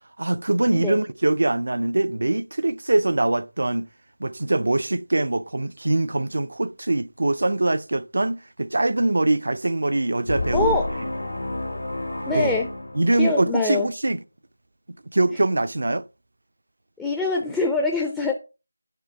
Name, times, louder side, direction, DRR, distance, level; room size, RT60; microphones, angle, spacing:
voice 1, 0.2-3.9 4.2-10.8 12.3-12.5 12.9-14.2 15.1-16.1, right 2 dB, 65° right, 0.5 m, -23 dB
sound 1, 10.3-13.6, left 1 dB, 80° left, 1.9 m, -30 dB
voice 2, 10.5-10.9 12.3-12.7 13.2-13.9 17.0-18.3, left 3 dB, 5° left, 0.5 m, -24 dB
6.7 x 3.4 x 5.7 m
figure-of-eight pair, 165°, 0 cm